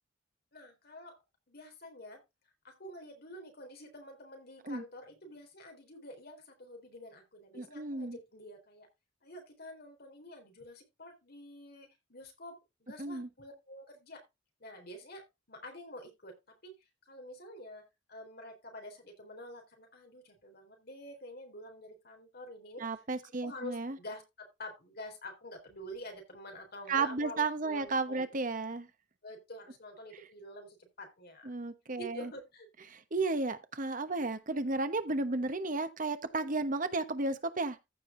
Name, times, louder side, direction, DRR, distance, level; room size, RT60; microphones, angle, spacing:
voice 1, 0.5-1.2 1.5-2.2 2.6-8.9 9.2-14.2 14.6-16.4 16.6-16.7 17.1-17.8 18.1-23.0 23.4-28.3 29.2-31.5 31.9-32.7, left 1 dB, 55° left, 3.8 m, -48 dB
voice 2, 7.5-8.2 13.0-13.3 22.8-24.0 26.9-28.9 31.4-32.3 32.9-37.8, right 3 dB, 45° right, 1.1 m, -33 dB
15.0 x 5.0 x 3.8 m
head